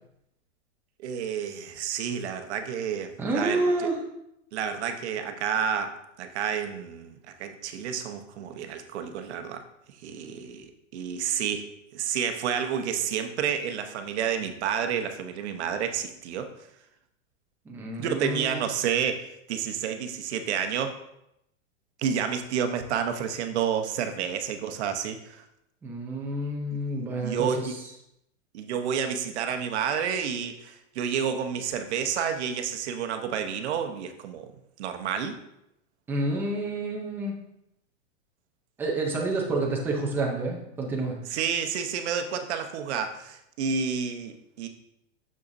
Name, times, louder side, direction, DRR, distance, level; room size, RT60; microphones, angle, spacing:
voice 1, 1.0-3.6 4.5-9.6 10.0-11.7 11.9-16.5 18.0-20.9 22.0-25.4 26.7-26.8 27.2-27.7 28.5-34.5 34.8-35.4 41.3-44.7, right 7 dB, 60° right, 7 dB, 0.9 m, -30 dB
voice 2, 3.2-4.0 17.7-18.6 25.8-27.8 36.1-37.4 38.8-41.2, right 2 dB, 5° right, -1 dB, 0.5 m, -29 dB
6.8 x 6.5 x 2.6 m, 0.81 s
supercardioid pair, 165°, 37 cm